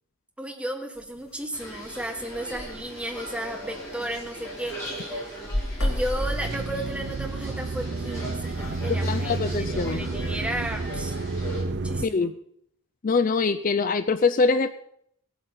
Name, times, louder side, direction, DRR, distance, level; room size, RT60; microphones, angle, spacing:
voice 1, 0.4-5.3 5.8-11.2 11.7-12.3, right 1 dB, 5° right, 3 dB, 1.4 m, -34 dB
sound 1, 1.0-1.2 1.7-1.8 2.0-2.1 2.3-2.7 3.3-3.4 3.8-4.5 4.8-7.1, left 1 dB, 85° left, 2.9 m, -30 dB
sound 2, 1.5-11.6, right 1 dB, 15° left, 4.9 m, -39 dB
sound 3, 6.2-12.1, right 3 dB, 50° right, 0.6 m, -30 dB
voice 2, 8.9-10.1 12.0-12.3 13.0-14.7, left 4 dB, 40° left, 12 dB, 0.4 m, -24 dB
17.0 x 8.0 x 5.7 m, 0.71 s
head